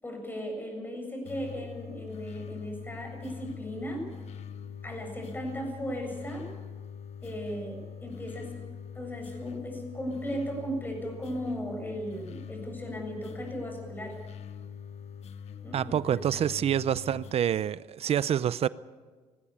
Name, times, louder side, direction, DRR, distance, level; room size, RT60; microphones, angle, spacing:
voice 1, 0.0-4.1 4.8-6.5 7.2-8.5 8.9-14.2 15.6-15.9 16.3-16.4, equal, 15° left, 2 dB, 7.5 m, -36 dB
sound 1, 1.2-17.3, left 7 dB, 60° left, 1.1 m, -43 dB
voice 2, 15.7-18.7, right 9 dB, 55° right, 18 dB, 0.6 m, -27 dB
20.0 x 16.0 x 8.5 m, 1.4 s
cardioid pair, 85°, 12 cm